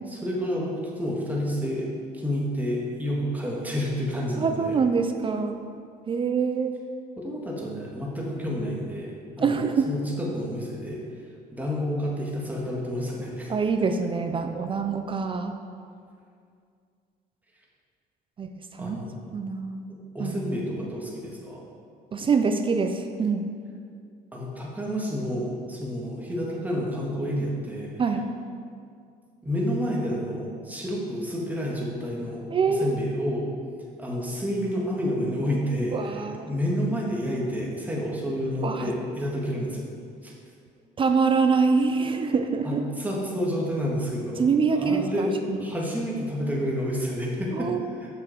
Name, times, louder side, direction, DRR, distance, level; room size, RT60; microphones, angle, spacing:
voice 1, 0.1-1.9 2.1-4.7 7.2-11.0 11.5-13.5 18.8-19.2 20.1-21.6 24.3-27.9 29.4-33.4 34.0-36.1 36.5-39.9 40.2-40.3 42.6-44.4 44.7-45.3 45.6-47.7 48.0-48.1, equal, 10° right, -3 dB, 1.7 m, -29 dB
voice 2, 4.4-5.6 6.1-6.8 9.4-9.9 13.5-15.5 18.4-19.0 19.3-19.9 20.2-20.4 22.1-23.5 28.0-28.2 32.5-33.0 35.9-36.5 38.6-38.9 41.0-42.8 44.4-45.6 47.5-47.9, right 5 dB, 30° right, 6 dB, 0.5 m, -25 dB
6.7 x 6.0 x 5.0 m, 2.3 s
cardioid pair, 110°, 17 cm